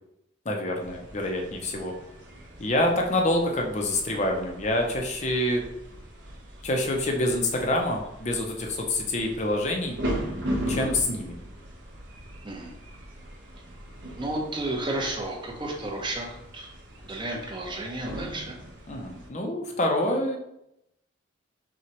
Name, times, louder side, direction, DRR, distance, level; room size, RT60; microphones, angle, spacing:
voice 1, 0.4-1.9 2.6-5.6 6.6-10.0 10.7-11.4 18.9-20.4, left 1 dB, 35° left, 2 dB, 0.6 m, -26 dB
sound 1, 0.8-19.3, equal, 65° right, 0.8 m, -39 dB
voice 2, 14.2-16.3 16.5-16.7 17.1-18.5, right 2 dB, 25° right, -1 dB, 0.7 m, -32 dB
5.9 x 2.3 x 2.9 m, 0.83 s
head